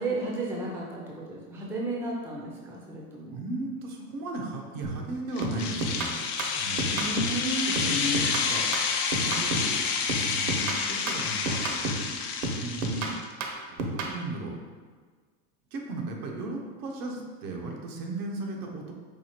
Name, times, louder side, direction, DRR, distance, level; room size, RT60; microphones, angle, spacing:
voice 1, 0.0-3.3 6.9-8.2, right 1 dB, 5° right, -3 dB, 0.4 m, -33 dB
voice 2, 3.3-7.1 7.6-8.9 9.2-9.8 10.2-11.6 12.6-13.2 13.6-14.6 15.7-18.9, right 2 dB, 90° right, 1 dB, 0.9 m, -36 dB
sound 1, 4.8-5.1 5.4-7.4 7.7-9.8 10.1-12.1 12.4-14.2, right 2 dB, 60° right, 0.7 m, -32 dB
sound 2, 5.4-13.2, left 6 dB, 75° left, 0.6 m, -29 dB
sound 3, 8.2-10.8, left 4 dB, 45° left, 0.8 m, -46 dB
4.7 x 2.4 x 2.9 m, 1.5 s
supercardioid pair, 120°, 44 cm